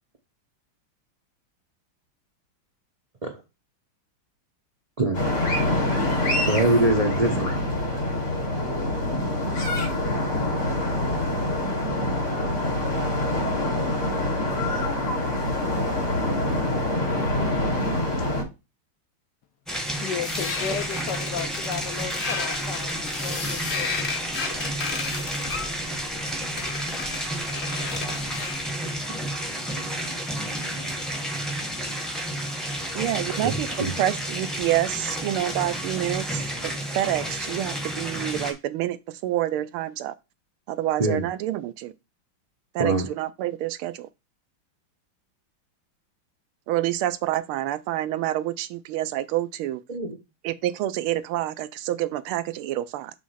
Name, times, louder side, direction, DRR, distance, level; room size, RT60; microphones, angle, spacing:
sound 1, 5.1-18.4, left 1 dB, 90° left, 3.4 m, -25 dB
voice 1, 6.4-7.5 33.4-33.5 33.8-33.9 41.0-41.3 42.8-43.1 49.9-50.1, right 2 dB, 60° right, 0.4 m, -23 dB
sound 2, 19.7-38.5, equal, ahead, 0.7 m, -31 dB
voice 2, 20.0-24.1, left 7 dB, 70° left, 1.1 m, -34 dB
sound 3, 20.2-28.7, left 5 dB, 45° left, 0.8 m, -34 dB
voice 3, 32.9-40.1 40.7-41.9 42.7-44.1 46.7-49.8 50.4-53.1, right 13 dB, 90° right, 1.5 m, -28 dB
6.2 x 3.1 x 5.5 m
omnidirectional pair, 2.3 m